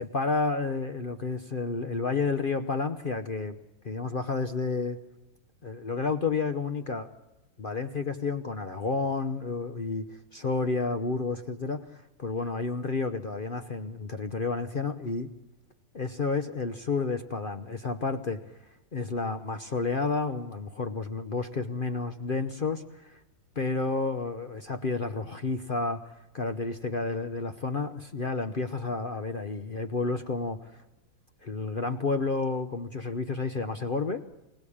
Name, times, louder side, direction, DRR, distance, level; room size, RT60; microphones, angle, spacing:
voice 1, 0.0-3.6 3.8-5.0 5.6-7.1 7.6-15.3 15.9-18.5 18.9-23.2 23.6-30.8 31.4-34.2, left 4 dB, 55° left, 8 dB, 0.5 m, -31 dB
25.0 x 17.0 x 8.6 m, 1.0 s
omnidirectional pair, 2.2 m